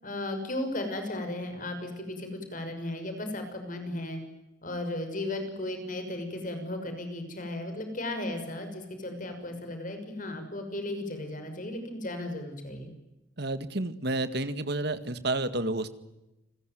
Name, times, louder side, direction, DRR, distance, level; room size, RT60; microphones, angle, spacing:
voice 1, 0.0-4.2 4.6-12.9, left 1 dB, 45° left, 7 dB, 6.1 m, -35 dB
voice 2, 13.4-15.9, right 2 dB, 60° right, 11 dB, 2.0 m, -30 dB
30.0 x 20.5 x 9.4 m, 0.96 s
head